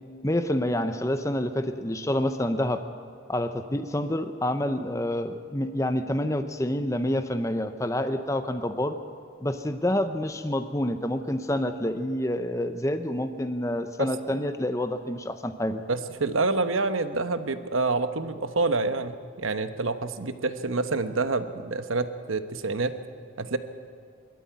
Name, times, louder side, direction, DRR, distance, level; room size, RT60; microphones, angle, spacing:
voice 1, 0.2-2.8 3.3-8.9 9.4-15.8, left 1 dB, 15° left, 8 dB, 0.7 m, -28 dB
voice 2, 14.0-14.4 15.9-23.0 23.4-23.6, right 3 dB, 90° right, 10 dB, 1.1 m, -27 dB
23.0 x 13.0 x 9.5 m, 2.2 s
head